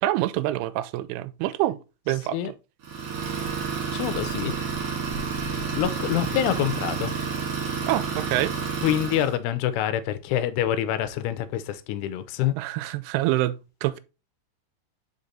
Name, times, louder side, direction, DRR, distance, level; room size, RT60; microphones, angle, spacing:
voice 1, 0.0-1.8 2.1-2.4 7.8-8.5 12.6-14.0, right 15 dB, 85° right, 2.6 m, -26 dB
Idling, 2.8-9.4, right 5 dB, 50° right, 2.3 m, -30 dB
voice 2, 3.9-4.5 5.7-7.2 8.8-12.6, left 11 dB, 80° left, 2.5 m, -26 dB
5.1 x 5.1 x 4.0 m
omnidirectional pair, 4.7 m